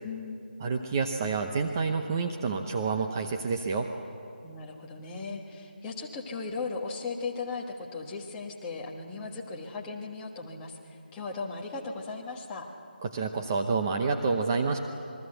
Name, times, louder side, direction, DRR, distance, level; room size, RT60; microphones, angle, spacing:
voice 1, 0.0-0.4 4.4-12.7, left 4 dB, 10° left, -1 dB, 1.4 m, -37 dB
voice 2, 0.6-3.9 13.0-14.8, right 4 dB, 20° right, 4 dB, 0.8 m, -28 dB
27.5 x 22.0 x 7.9 m, 2.6 s
figure-of-eight pair, 170°, 6 cm